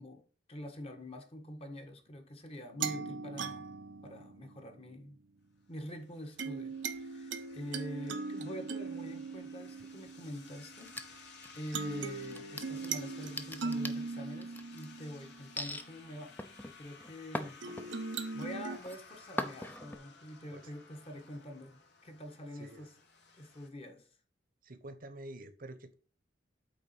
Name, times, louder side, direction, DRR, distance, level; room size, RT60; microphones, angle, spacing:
voice 1, 0.0-3.7 4.0-5.2 5.7-17.7 18.3-22.9 23.3-24.1, left 1 dB, 35° left, 1.5 m, -46 dB
sound 1, 2.8-5.0 6.4-11.2 11.7-15.9 17.6-18.8, right 4 dB, 80° right, 0.9 m, -40 dB
sound 2, 5.8-23.7, left 4 dB, 65° left, 1.7 m, -56 dB
sound 3, 10.8-11.8 12.2-14.9 15.6-15.9 16.4-18.2 18.6-19.0 19.4-20.0, left 1 dB, 10° left, 0.7 m, -41 dB
voice 2, 22.5-22.9 24.6-25.9, right 1 dB, 50° right, 1.1 m, -48 dB
8.6 x 3.8 x 5.6 m
head